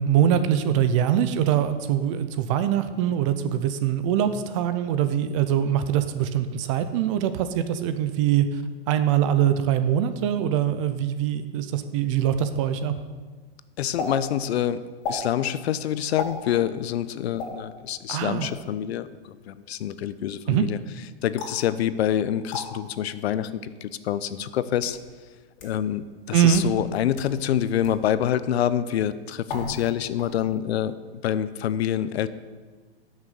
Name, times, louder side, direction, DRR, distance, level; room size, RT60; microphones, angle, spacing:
voice 1, 0.0-8.6 8.9-12.9 18.1-18.5 20.5-20.7 26.3-26.6, right 10 dB, 30° right, 11 dB, 0.5 m, -23 dB
voice 2, 13.8-14.8 15.1-20.8 21.2-25.0 25.6-30.9 31.2-32.3, left 10 dB, 75° left, 15 dB, 0.7 m, -26 dB
sound 1, 14.0-14.1 15.0-15.2 16.2-16.4 17.4-17.5 18.4-18.7 21.4-21.6 22.5-22.6 23.6-23.7 24.5-25.0 25.6-25.7 26.4-26.7 27.1-27.3 27.8-28.0 29.5-29.9 30.2-30.6, left 4 dB, 45° left, 2.8 m, -33 dB
9.1 x 6.3 x 6.6 m, 1.4 s
hypercardioid pair, 150°, 32 cm